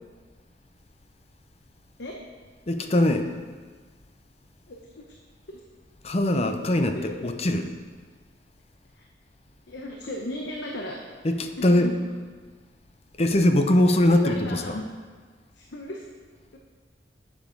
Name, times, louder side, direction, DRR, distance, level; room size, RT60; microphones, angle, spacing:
voice 1, 2.7-3.3 6.0-7.7 11.2-11.9 13.2-14.7, left 1 dB, 35° left, 6 dB, 0.6 m, -21 dB
voice 2, 4.7-5.0 5.5-5.6 6.9-7.2 8.9-9.1 9.7-11.0 11.6-12.0 14.0-14.8 15.6-16.1 16.5-16.6, left 1 dB, 80° left, 0 dB, 0.9 m, -36 dB
11.5 x 7.1 x 3.9 m, 1.5 s
head